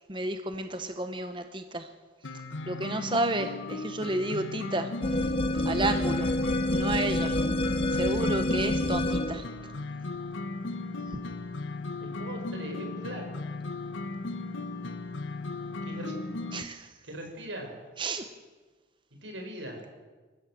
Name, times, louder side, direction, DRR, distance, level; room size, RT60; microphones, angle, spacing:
voice 1, 0.1-1.9 2.3-5.3 5.6-6.3 6.7-7.4 7.9-9.5 11.1-11.2 16.5-17.0 18.0-18.3, right 2 dB, 25° right, 8 dB, 1.0 m, -32 dB
sound 1, 2.2-16.6, left 3 dB, 85° left, 1.3 m, -37 dB
sound 2, 5.0-9.5, left 1 dB, 30° left, 0.8 m, -27 dB
voice 2, 12.0-13.3 15.8-16.1 17.0-17.8 19.2-19.8, right 1 dB, 90° right, 3 dB, 5.5 m, -40 dB
26.5 x 15.0 x 7.6 m, 1.3 s
head